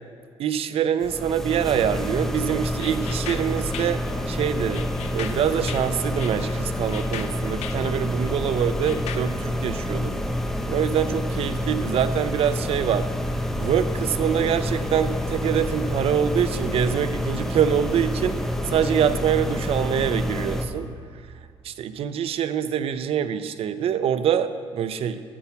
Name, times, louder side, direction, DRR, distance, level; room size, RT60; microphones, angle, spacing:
voice 1, 0.4-4.0 4.3-4.8 5.1-10.1 10.7-13.1 13.6-18.4 18.7-20.9 21.6-25.2, right 8 dB, 65° right, 12 dB, 0.6 m, -24 dB
sound 1, 1.0-20.7, left 1 dB, 5° left, 0.7 m, -28 dB
sound 2, 2.8-9.2, left 9 dB, 85° left, 0.6 m, -39 dB
8.5 x 7.1 x 6.8 m, 2.2 s
cardioid pair, 120°, 11 cm